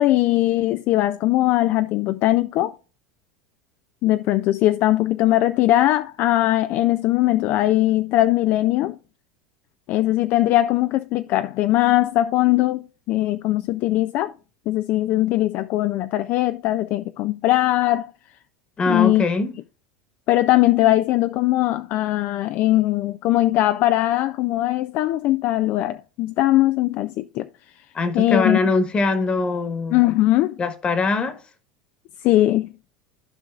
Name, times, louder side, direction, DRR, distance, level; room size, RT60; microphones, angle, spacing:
voice 1, 0.0-2.7 4.0-9.0 9.9-14.3 14.7-18.1 18.9-19.2 20.3-27.5 28.1-28.6 29.9-30.6 32.2-32.7, left 15 dB, 45° left, 0.4 m, -20 dB
voice 2, 18.8-19.5 27.9-30.0 30.6-31.4, left 3 dB, 20° left, 1.3 m, -22 dB
15.0 x 5.2 x 2.4 m
supercardioid pair, 140°, 5 cm